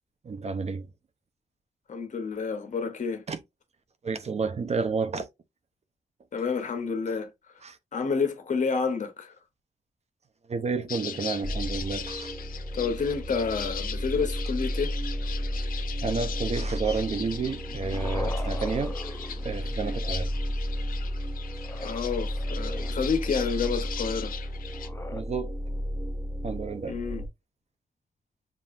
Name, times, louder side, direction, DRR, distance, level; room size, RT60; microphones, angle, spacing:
voice 1, 0.2-0.9 3.3-3.4 4.0-5.3 7.1-7.2 7.6-7.8 10.5-12.3 16.0-19.0 19.4-20.3 25.1-25.6 26.4-27.0, right 4 dB, 50° right, 0.6 m, -30 dB
voice 2, 1.9-3.2 6.3-7.3 7.9-9.3 12.7-15.0 21.8-24.3 26.9-27.2, left 5 dB, 60° left, 1.1 m, -29 dB
sound 1, 10.9-24.9, left 8 dB, 90° left, 0.5 m, -40 dB
sound 2, 11.4-27.3, equal, 10° right, 1.5 m, -33 dB
sound 3, 17.4-20.1 21.6-23.3 24.7-25.2, left 1 dB, 20° left, 0.6 m, -41 dB
7.4 x 2.5 x 2.5 m
cardioid pair, 85°, 14 cm